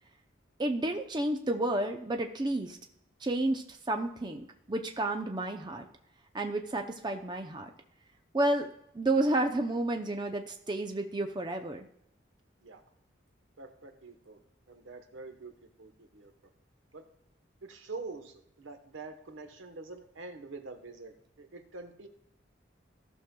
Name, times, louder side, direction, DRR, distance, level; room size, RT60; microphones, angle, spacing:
voice 1, 0.6-2.8 3.2-5.9 6.3-7.7 8.3-8.7 8.9-11.9, right 1 dB, 20° right, 5 dB, 0.5 m, -31 dB
voice 2, 13.6-14.4 14.7-16.3 16.9-17.1 17.6-22.1, right 3 dB, 80° right, 7 dB, 1.1 m, -46 dB
15.0 x 6.3 x 2.2 m, 0.79 s
head